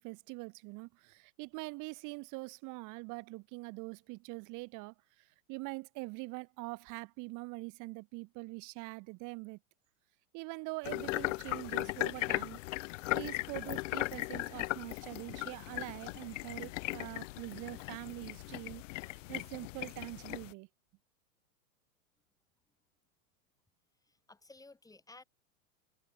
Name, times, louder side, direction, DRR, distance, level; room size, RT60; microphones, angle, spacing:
voice 1, 0.0-9.6 10.3-12.6 13.1-20.7, right 26 dB, 45° right, 3.7 m, -44 dB
sound 1, 10.8-20.5, left 20 dB, 60° left, 2.8 m, -38 dB
voice 2, 24.1-25.2, left 3 dB, 10° left, 4.5 m, -56 dB
hypercardioid pair, 120°, 43 cm